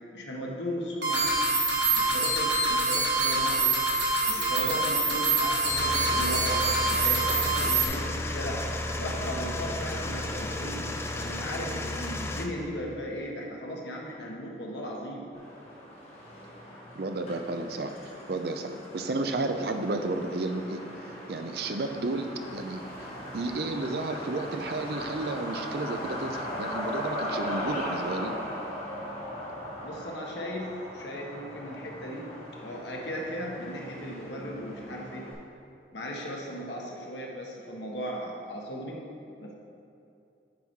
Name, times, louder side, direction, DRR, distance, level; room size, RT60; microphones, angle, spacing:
voice 1, 0.1-1.4 2.0-3.7 4.3-6.6 6.9-8.6 8.9-10.8 11.1-15.3 29.8-32.3 32.6-35.2 35.9-39.0 39.4-39.5, equal, 85° left, -2 dB, 1.3 m, -37 dB
sound 1, 1.0-7.9, right 3 dB, 80° right, 1.6 m, -25 dB
sound 2, 5.6-12.5, left 1 dB, 15° left, 0.4 m, -33 dB
Truck, 15.3-35.3, equal, 40° left, 1.7 m, -38 dB
voice 2, 16.9-17.9 18.3-20.8 21.3-22.8 23.3-28.4, right 2 dB, 60° right, 6 dB, 0.5 m, -32 dB
9.3 x 4.5 x 4.6 m, 2.6 s
head